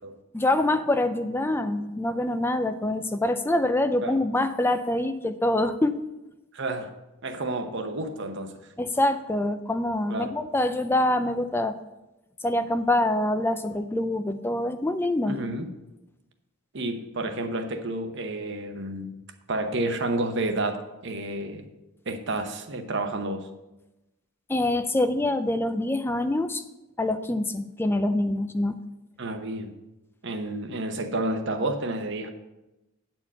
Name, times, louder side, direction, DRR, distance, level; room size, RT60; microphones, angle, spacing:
voice 1, 0.3-6.0 8.8-11.8 12.4-15.4 24.5-26.6 27.0-28.8, left 1 dB, 10° left, 9 dB, 0.4 m, -25 dB
voice 2, 6.5-6.9 7.2-8.5 10.1-10.3 15.3-15.7 16.7-19.1 19.5-21.6 22.1-23.5 29.2-29.7 30.2-32.3, right 2 dB, 60° right, 6 dB, 0.9 m, -30 dB
8.8 x 4.5 x 7.3 m, 0.99 s
head